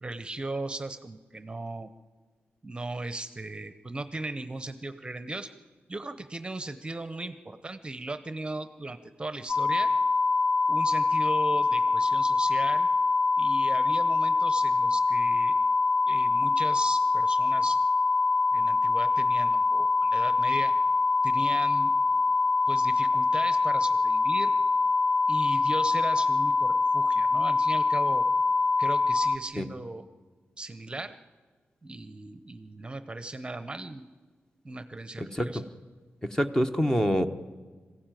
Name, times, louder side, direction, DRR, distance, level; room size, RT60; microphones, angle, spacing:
voice 1, 0.0-1.9 2.6-5.5 5.9-9.9 10.7-12.9 13.4-15.6 16.1-17.8 18.5-20.7 21.2-21.9 22.7-24.5 25.3-28.3 28.8-30.0 30.6-31.1 31.8-34.0 34.6-35.6, right 2 dB, 25° right, 11 dB, 0.8 m, -37 dB
sound 1, 9.5-29.4, left 3 dB, 45° left, 0.6 m, -24 dB
voice 2, 35.2-35.6 36.2-37.3, equal, 15° left, 7 dB, 1.1 m, -26 dB
21.0 x 15.0 x 9.2 m, 1.4 s
wide cardioid pair, 105°, 4 cm